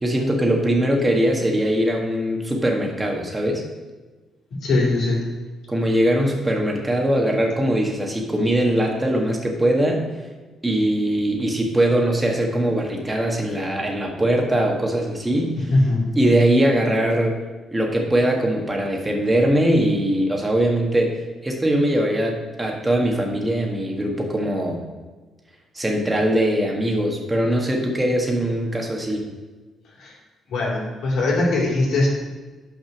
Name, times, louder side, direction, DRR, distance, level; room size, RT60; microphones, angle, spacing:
voice 1, 0.0-3.6 5.7-10.0 10.6-15.7 16.1-17.4 17.7-24.8 25.7-29.2, right 1 dB, 15° right, 1 dB, 1.6 m, -21 dB
voice 2, 4.6-5.2 15.7-16.1 30.0-30.1 30.5-32.1, left 2 dB, 75° left, -4 dB, 2.6 m, -20 dB
6.1 x 5.4 x 5.9 m, 1.3 s
cardioid pair, 90°, 0 cm